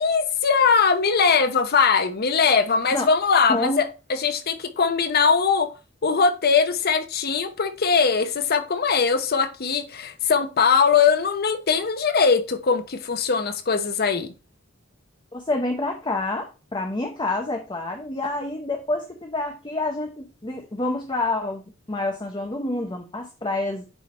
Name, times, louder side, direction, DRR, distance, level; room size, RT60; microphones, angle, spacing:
voice 1, 0.0-5.7 6.0-14.3, left 5 dB, 50° left, 0.7 m, -21 dB
voice 2, 3.5-3.8 15.3-21.6 21.9-23.8, left 2 dB, 20° left, 0.9 m, -28 dB
9.8 x 3.4 x 4.2 m
head